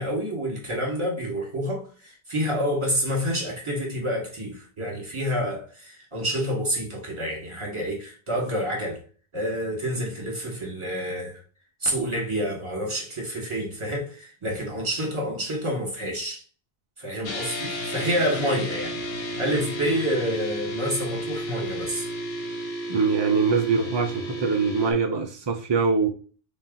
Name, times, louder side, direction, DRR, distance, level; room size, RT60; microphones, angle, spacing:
voice 1, 0.0-9.0 9.3-11.4 11.8-16.4 17.0-19.0 19.4-22.1, equal, 30° right, 1.3 m, -28 dB
sound 1, 17.2-24.9, right 1 dB, 70° left, 1.1 m, -32 dB
voice 2, 22.9-26.1, right 5 dB, 45° right, 0.3 m, -23 dB
4.0 x 2.4 x 3.8 m
omnidirectional pair, 1.1 m